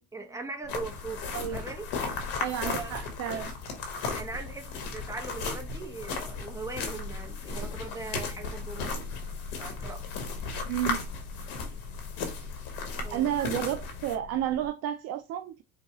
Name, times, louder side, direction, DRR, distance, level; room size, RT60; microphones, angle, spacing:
voice 1, 0.0-1.9 2.6-3.1 4.1-9.2 9.6-10.1 13.0-13.3, right 3 dB, 10° right, 1.1 m, -40 dB
sound 1, 0.6-14.7, left 6 dB, 50° left, 0.4 m, -44 dB
sound 2, 0.7-14.2, left 4 dB, 85° left, 1.4 m, -36 dB
voice 2, 2.4-3.5 10.7-11.0 13.1-15.6, right 11 dB, 55° right, 0.5 m, -31 dB
5.1 x 2.4 x 3.0 m
cardioid pair, 110°, 30 cm